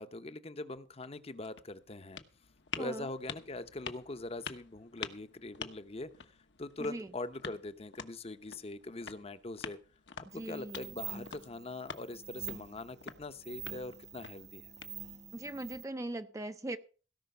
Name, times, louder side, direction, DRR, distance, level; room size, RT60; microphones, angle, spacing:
voice 1, 0.0-2.2 2.8-6.1 6.6-9.8 10.2-14.7, left 2 dB, 35° left, 12 dB, 0.8 m, -42 dB
sound 1, 0.9-15.4, left 6 dB, 70° left, 1.1 m, -48 dB
voice 2, 2.8-3.1 6.8-7.1 10.3-11.2 15.3-16.8, right 1 dB, 15° right, 9 dB, 0.5 m, -40 dB
sound 2, 10.3-15.8, right 7 dB, 40° right, 0.9 m, -47 dB
17.0 x 5.7 x 6.8 m, 0.38 s
head